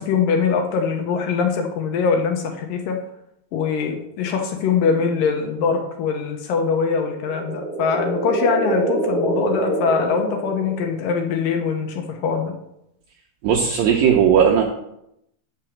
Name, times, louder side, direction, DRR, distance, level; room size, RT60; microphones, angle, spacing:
voice 1, 0.0-3.0 3.5-12.5, left 5 dB, 75° left, 4 dB, 2.1 m, -22 dB
sound 1, 7.1-11.2, right 1 dB, 35° right, 1.3 m, -25 dB
voice 2, 13.4-14.6, right 8 dB, 75° right, 1 dB, 2.1 m, -16 dB
6.1 x 6.0 x 7.1 m, 0.80 s
omnidirectional pair, 4.7 m